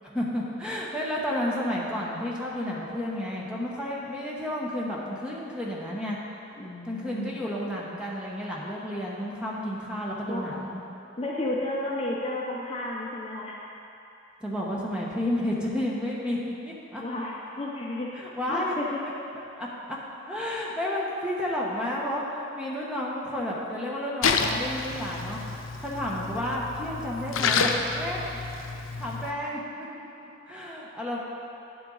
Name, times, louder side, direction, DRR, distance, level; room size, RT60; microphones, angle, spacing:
voice 1, 0.0-6.2 6.8-10.8 14.4-17.0 18.1-18.7 19.6-19.7 20.3-28.4 28.7-29.9 30.2-31.2, left 1 dB, 5° right, -5 dB, 1.0 m, -31 dB
voice 2, 6.5-7.4 10.3-10.6 11.2-13.6 17.0-18.1 18.5-19.0, left 1 dB, 30° left, -4 dB, 0.7 m, -32 dB
Splash splatter, 24.2-29.3, left 4 dB, 85° left, 0.6 m, -29 dB
9.5 x 7.8 x 4.0 m, 2.9 s
head